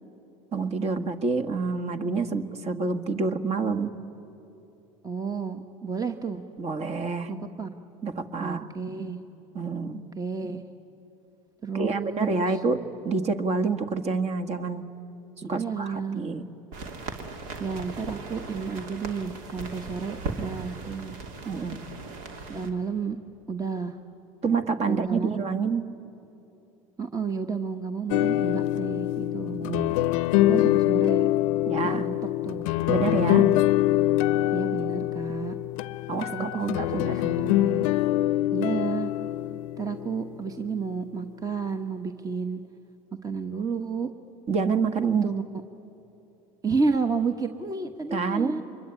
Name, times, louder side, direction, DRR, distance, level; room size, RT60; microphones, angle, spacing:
voice 1, 0.5-4.0 6.6-7.3 8.0-8.7 9.6-10.0 11.7-14.9 15.5-16.5 21.5-21.8 24.4-25.8 29.5-29.9 31.7-32.1 32.9-33.4 35.4-35.5 36.1-37.2 44.5-45.3 48.1-48.6, right 4 dB, 40° right, 9 dB, 1.7 m, -27 dB
voice 2, 5.0-6.4 7.3-7.7 8.4-9.2 10.2-10.6 11.6-12.6 15.4-16.2 17.6-21.2 22.5-23.2 23.5-24.0 24.8-25.4 27.0-29.6 30.5-31.3 31.8-32.1 32.4-32.7 33.3-33.7 34.5-35.6 36.3-37.9 38.5-39.1 39.8-42.6 43.2-44.1 45.2-45.4 46.6-48.6, right 5 dB, 20° right, 8 dB, 1.2 m, -31 dB
unpressed vinyl, 16.7-22.7, right 3 dB, 70° right, 2.8 m, -38 dB
sound 1, 28.1-40.6, left 15 dB, 75° left, 0.6 m, -24 dB
25.5 x 22.5 x 9.9 m, 3.0 s
hypercardioid pair, 85°, 17 cm